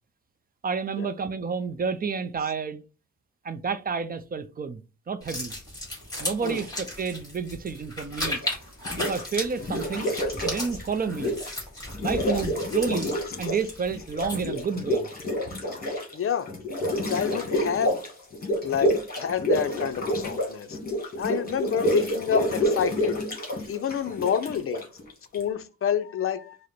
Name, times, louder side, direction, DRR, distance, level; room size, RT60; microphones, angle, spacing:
voice 1, 0.6-2.8 3.4-4.8 5.1-5.5 6.2-8.4 9.0-10.1 10.4-11.4 12.0-15.1 15.4-15.6, right 5 dB, 30° right, 0.4 m, -30 dB
sound 1, 5.2-14.6, left 1 dB, 15° left, 1.9 m, -36 dB
sound 2, 8.1-8.5 8.9-11.6 11.9-13.7 13.9-25.4, equal, 30° left, 1.6 m, -28 dB
voice 2, 16.1-16.5 17.1-18.0 18.6-20.8 21.2-23.2 23.7-24.9 25.3-26.6, left 8 dB, 50° left, 0.5 m, -28 dB
4.8 x 2.1 x 4.4 m
wide cardioid pair, 140°, 29 cm